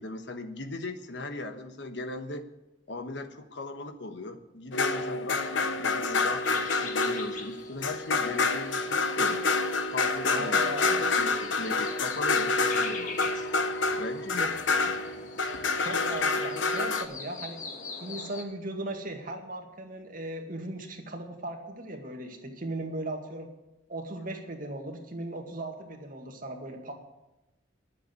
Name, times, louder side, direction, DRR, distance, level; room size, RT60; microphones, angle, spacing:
voice 1, 0.0-2.4 2.9-9.4 9.9-13.4 13.9-14.5 14.8-15.0, left 2 dB, 65° left, 7 dB, 1.2 m, -38 dB
sound 1, 4.7-17.0, left 3 dB, 85° left, 1.0 m, -28 dB
sound 2, 6.4-18.4, left 4 dB, 45° left, 1.5 m, -44 dB
voice 2, 10.3-11.1 14.4-14.5 15.8-17.7 18.0-23.5 23.9-26.9, right 2 dB, 50° right, 3 dB, 2.0 m, -37 dB
11.0 x 7.6 x 9.7 m, 0.98 s
head